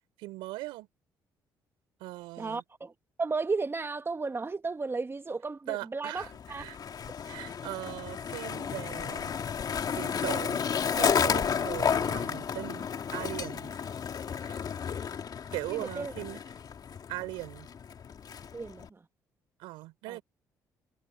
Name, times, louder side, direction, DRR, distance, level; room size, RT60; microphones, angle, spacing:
voice 1, 0.2-0.9 2.0-2.6 5.7-6.8 7.2-9.3 9.9-10.7 11.0-13.9 14.4-14.7 15.5-16.4 17.1-17.7 19.6-20.2, right 19 dB, 85° right, 4.7 m, -39 dB
voice 2, 2.4-2.9 3.2-6.2 6.5-6.6 15.7-16.1 18.5-19.0 20.1-20.2, right 4 dB, 30° right, 1.8 m, -34 dB
Skateboard, 6.2-18.9, left 7 dB, 55° left, 2.7 m, -32 dB
supercardioid pair, 60°, 8 cm